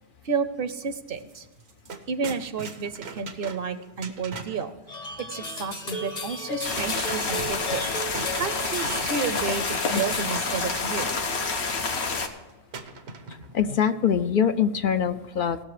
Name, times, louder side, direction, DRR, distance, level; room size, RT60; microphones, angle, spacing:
voice 1, 0.2-1.5 2.1-4.7 5.2-9.6 9.9-11.1, right 5 dB, 65° right, 11 dB, 0.9 m, -31 dB
sound 1, 1.2-1.3 1.6-4.7 6.4-9.6 9.9-11.0 12.7-13.6, right 4 dB, 80° right, 1.2 m, -40 dB
sound 2, 4.9-10.6, left 2 dB, 40° left, 1.0 m, -35 dB
sound 3, 6.6-12.3, left 4 dB, 90° left, 1.4 m, -28 dB
voice 2, 13.5-15.6, left 8 dB, 60° left, 9 dB, 0.7 m, -23 dB
17.5 x 6.5 x 4.9 m, 1.2 s
omnidirectional pair, 1.1 m